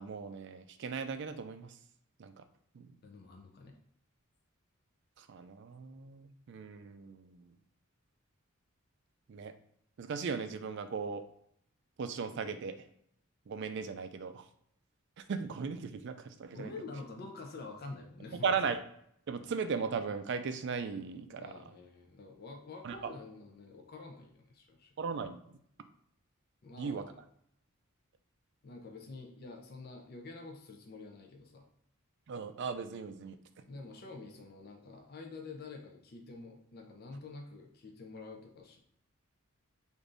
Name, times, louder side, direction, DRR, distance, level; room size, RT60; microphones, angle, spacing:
voice 1, 0.0-1.7 2.2-2.4 2.7-2.9 5.2-7.6 9.3-9.5 10.0-11.2 12.0-12.9 13.5-14.4 15.3-16.7 18.4-18.8 19.3-21.7 22.8-23.2 25.0-25.4 26.8-27.0 32.3-33.4, right 5 dB, 55° right, 9 dB, 0.4 m, -37 dB
voice 2, 3.0-3.8 16.5-18.5 21.4-24.9 26.6-27.2 28.6-31.7 33.7-38.8, left 3 dB, 45° left, 2 dB, 0.5 m, -48 dB
3.4 x 2.6 x 3.8 m, 0.70 s
head